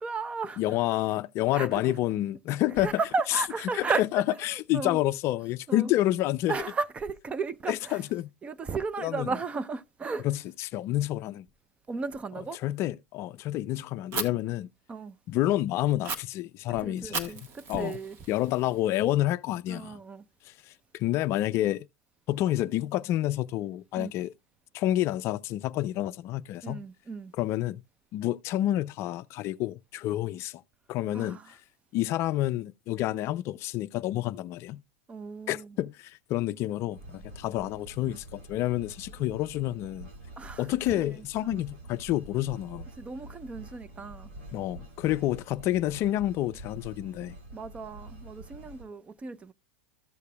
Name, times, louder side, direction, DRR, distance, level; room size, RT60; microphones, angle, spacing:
voice 1, 0.0-0.6 1.5-2.0 2.8-4.0 4.5-5.0 5.7-5.9 6.5-8.0 8.4-10.3 11.9-12.6 14.9-15.2 16.7-18.2 19.7-20.2 24.0-24.1 26.6-27.3 31.1-31.5 35.1-35.8 40.4-41.6 43.0-44.3 45.1-45.2 47.5-49.5, right 4 dB, 20° right, 0.6 m, -34 dB
voice 2, 0.6-2.9 3.3-3.4 3.7-6.6 7.7-8.3 9.0-9.3 10.2-11.4 12.5-14.7 15.3-17.3 17.7-18.0 18.3-20.0 20.4-21.9 22.3-24.3 24.7-26.8 27.4-27.8 28.1-30.6 30.9-31.6 31.9-34.8 35.5-40.1 40.6-42.8 44.5-47.3, left 14 dB, 40° left, 0.4 m, -29 dB
Fire, 14.1-14.2 16.0-16.2 17.1-19.1, right 5 dB, 40° right, 1.5 m, -36 dB
sound 1, 36.9-48.8, right 2 dB, 70° right, 6.4 m, -46 dB
14.0 x 6.6 x 2.3 m
hypercardioid pair, 115°, 7 cm